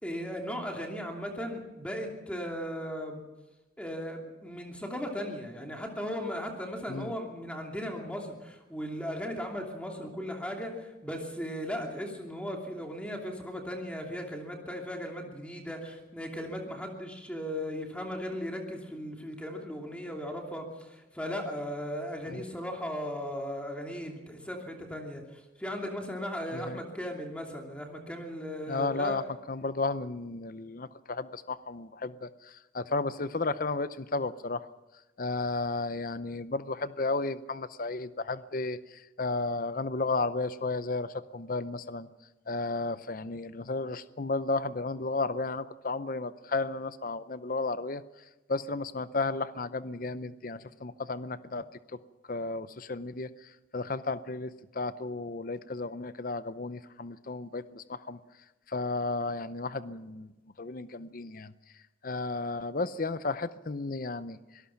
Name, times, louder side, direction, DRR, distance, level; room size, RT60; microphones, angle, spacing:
voice 1, 0.0-3.2 3.8-29.2, equal, 5° left, 1 dB, 2.8 m, -37 dB
voice 2, 28.7-34.7 35.2-42.1 42.5-48.0 48.5-51.6 51.9-52.0 52.3-58.2 58.7-60.3 60.6-61.5 62.0-64.4, left 3 dB, 45° left, 14 dB, 0.6 m, -33 dB
25.5 x 19.0 x 5.9 m, 1.1 s
head